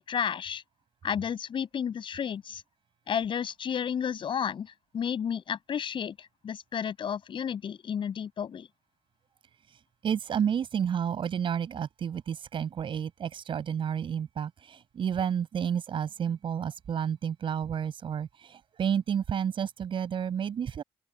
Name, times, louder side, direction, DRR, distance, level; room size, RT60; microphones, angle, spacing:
voice 1, 0.1-0.6 1.0-2.6 3.1-6.1 6.4-8.7, left 8 dB, 65° left, 7.3 m, -32 dB
voice 2, 10.0-20.8, right 8 dB, 65° right, 6.8 m, -31 dB
open air
supercardioid pair, 60°, 9 cm